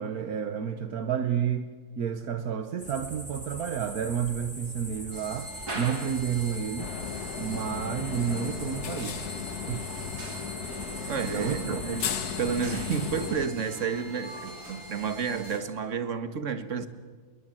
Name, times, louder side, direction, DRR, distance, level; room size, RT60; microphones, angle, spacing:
voice 1, 0.0-6.9 7.4-9.2 9.7-9.9 11.2-11.8, right 8 dB, 70° right, 9 dB, 1.4 m, -30 dB
sound 1, 2.8-13.3, equal, 5° left, 3.4 m, -42 dB
sound 2, 5.1-15.6, right 1 dB, 90° right, 4.7 m, -42 dB
sound 3, 6.8-13.5, left 8 dB, 80° left, 1.6 m, -36 dB
voice 2, 11.1-12.1 12.4-16.9, right 6 dB, 55° right, 10 dB, 1.8 m, -31 dB
27.0 x 22.0 x 7.5 m, 1.4 s
omnidirectional pair, 1.6 m